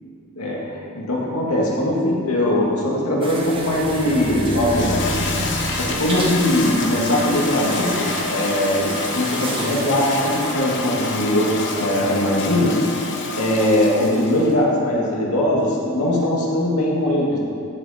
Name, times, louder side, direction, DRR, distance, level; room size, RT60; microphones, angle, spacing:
voice 1, 0.4-5.2 5.7-12.8 13.3-17.4, left 1 dB, 80° left, -3 dB, 2.0 m, -21 dB
sound 1, 3.2-10.5, right 2 dB, 25° right, 1.2 m, -32 dB
sound 2, 3.4-8.4, right 1 dB, 40° right, 0.6 m, -32 dB
Toilet flush, 3.5-14.6, left 3 dB, 55° left, 1.0 m, -28 dB
14.0 x 6.0 x 4.2 m, 2.6 s
head